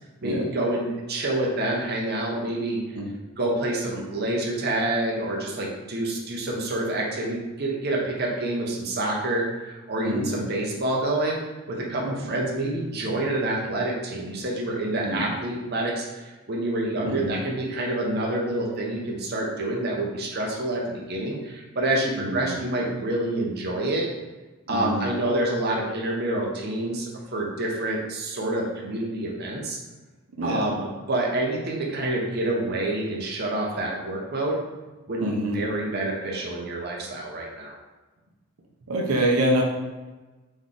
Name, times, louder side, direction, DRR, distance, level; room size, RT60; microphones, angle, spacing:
voice 1, 0.2-2.8 3.4-11.4 11.7-24.1 24.7-29.8 30.4-34.6 35.1-37.8, right 1 dB, 45° right, -2 dB, 0.7 m, -27 dB
voice 2, 10.0-10.4 12.0-12.3 15.0-15.3 17.0-17.4 22.2-22.5 24.7-25.1 30.3-30.8 35.2-35.6 38.9-39.6, right 1 dB, 85° right, 0 dB, 0.7 m, -26 dB
3.8 x 3.1 x 3.7 m, 1.2 s
head